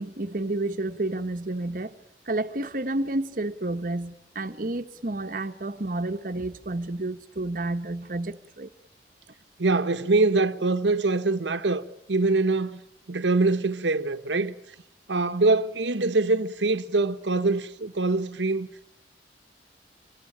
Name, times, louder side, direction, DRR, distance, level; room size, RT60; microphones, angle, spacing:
voice 1, 0.0-2.0 2.3-8.7, right 2 dB, 50° right, 1.1 m, -30 dB
voice 2, 9.6-12.8 13.1-14.5 15.1-18.7, right 3 dB, 85° right, 1.0 m, -24 dB
25.5 x 24.0 x 8.6 m
head